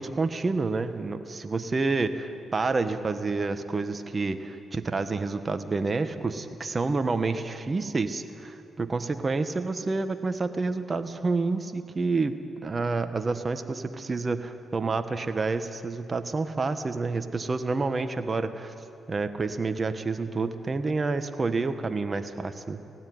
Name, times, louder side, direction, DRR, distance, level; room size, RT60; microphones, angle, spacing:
voice 1, 0.0-18.7 19.1-22.8, right 3 dB, 40° right, 8 dB, 1.5 m, -29 dB
18.0 x 17.5 x 9.5 m, 2.6 s
supercardioid pair, 50°, 0 cm